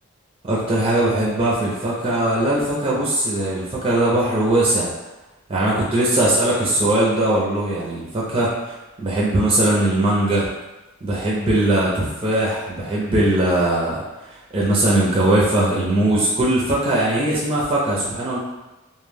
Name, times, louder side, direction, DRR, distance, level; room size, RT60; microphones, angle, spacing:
voice 1, 0.4-4.9 5.5-10.5 11.0-18.4, right 1 dB, 25° right, -6 dB, 0.4 m, -20 dB
2.1 x 2.1 x 3.2 m, 1.1 s
head